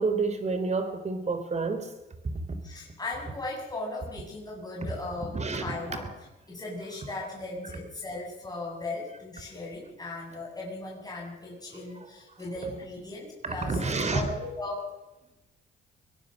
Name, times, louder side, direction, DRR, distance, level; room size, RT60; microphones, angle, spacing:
voice 1, 0.0-1.9 2.2-2.4 4.8-4.9 5.3-5.6 11.7-12.1 13.4-14.3, right 4 dB, 35° right, 3.7 m, -29 dB
voice 2, 2.6-6.1 6.5-14.9, left 2 dB, 20° left, 7.9 m, -37 dB
24.0 x 17.5 x 6.6 m
cardioid pair, 90°, 20 cm